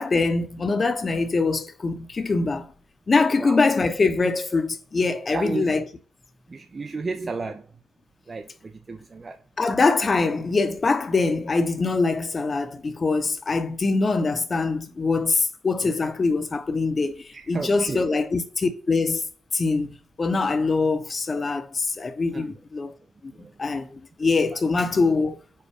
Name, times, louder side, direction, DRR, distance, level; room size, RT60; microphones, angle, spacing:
voice 1, 0.0-2.7 3.1-5.8 9.6-19.2 19.5-22.9 23.2-23.3 23.6-25.4, left 3 dB, 40° left, 0.7 m, -23 dB
voice 2, 5.3-5.7 6.5-7.7 8.3-9.4 17.3-18.1 22.3-22.5 23.3-23.5, right 3 dB, 40° right, 0.4 m, -32 dB
4.5 x 2.2 x 4.7 m
hypercardioid pair, 45°, 0 cm